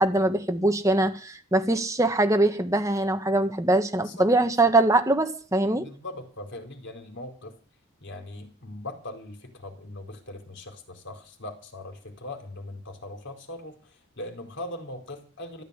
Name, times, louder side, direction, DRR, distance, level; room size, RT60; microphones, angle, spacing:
voice 1, 0.0-5.8, right 2 dB, 15° right, 1.7 m, -22 dB
voice 2, 5.7-7.6 8.0-15.6, left 1 dB, 55° left, 4.5 m, -40 dB
14.0 x 12.5 x 8.3 m
head